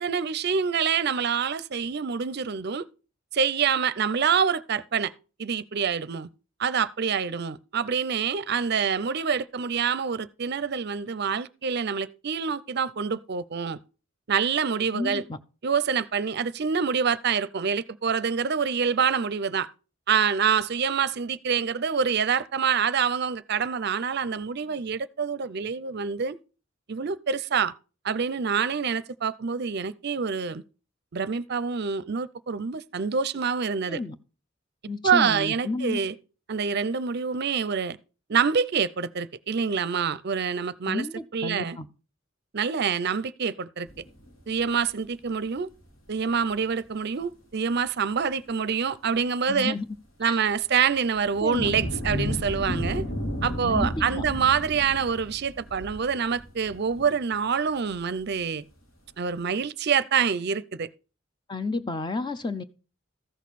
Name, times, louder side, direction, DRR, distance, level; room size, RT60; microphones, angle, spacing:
voice 1, 0.0-2.9 3.3-5.1 5.4-6.3 6.6-13.8 14.3-15.2 15.6-19.7 20.1-26.4 26.9-27.7 28.0-30.6 31.1-34.0 35.0-36.2 36.5-38.0 38.3-41.1 41.3-41.8 42.5-43.9 44.5-45.7 46.1-49.8 50.2-53.0 53.4-58.6 59.2-60.9, right 6 dB, 50° right, 0.5 m, -26 dB
voice 2, 14.9-15.4 33.9-34.2 34.9-36.0 40.9-41.9 49.5-49.8 50.2-50.4 51.4-51.7 53.6-54.2 61.5-62.6, left 3 dB, 20° left, 0.6 m, -31 dB
sound 1, 43.9-44.7 45.8-45.9 50.9-57.1 57.9-58.0, equal, 85° left, 3.2 m, -33 dB
14.0 x 6.4 x 4.1 m
head